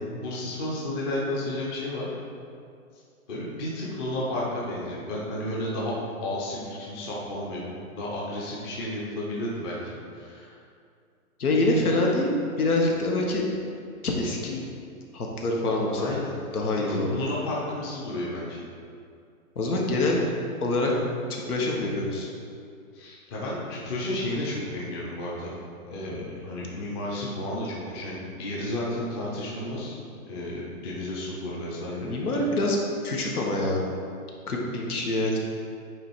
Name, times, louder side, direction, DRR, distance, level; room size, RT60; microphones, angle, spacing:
voice 1, 0.2-2.1 3.3-5.9 6.2-7.7 7.9-9.8 10.1-10.6 11.7-11.9 16.0-16.3 16.9-18.6 22.9-25.5 25.9-30.0 30.3-32.1, left 1 dB, 15° left, -5 dB, 0.7 m, -32 dB
voice 2, 11.4-13.4 14.0-14.6 15.1-16.0 16.5-17.2 19.5-20.2 20.6-20.9 21.3-22.3 32.1-32.8 33.0-33.8 34.5-35.4, left 2 dB, 80° left, -1 dB, 1.6 m, -25 dB
8.8 x 3.5 x 4.6 m, 2.3 s
hypercardioid pair, 150°, 44 cm